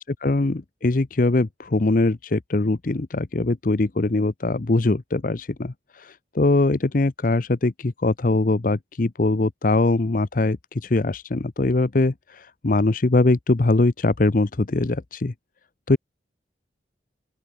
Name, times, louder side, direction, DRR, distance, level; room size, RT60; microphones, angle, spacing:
voice 1, 0.2-15.3 15.9-16.0, left 2 dB, 50° left, 0.7 m, -22 dB
open air
head